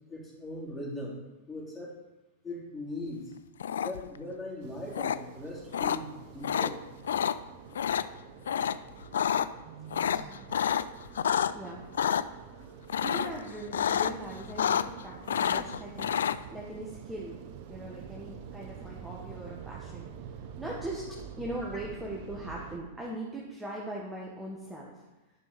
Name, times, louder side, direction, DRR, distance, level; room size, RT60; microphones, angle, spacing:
voice 1, 0.1-1.2 1.5-1.9 2.4-3.3 3.8-6.8, left 2 dB, 15° left, -5 dB, 3.5 m, -39 dB
sound 1, 3.6-4.2 4.9-5.2 5.7-6.0 6.4-6.7 7.0-7.3 7.7-8.0 8.5-8.7 9.0-9.5 9.9-11.5 11.9-12.2 12.9-13.4 13.7-14.1 14.4-15.0 15.3-16.4, left 8 dB, 70° left, 0.3 m, -28 dB
sound 2, 4.6-22.8, right 8 dB, 50° right, 0.8 m, -47 dB
voice 2, 10.0-10.5 11.5-11.8 12.1-12.8 13.0-17.4 17.7-20.1 20.6-21.1 21.4-25.0, right 1 dB, 5° right, -4 dB, 1.4 m, -40 dB
10.5 x 5.3 x 5.3 m, 1.1 s
figure-of-eight pair, 100°, 0 cm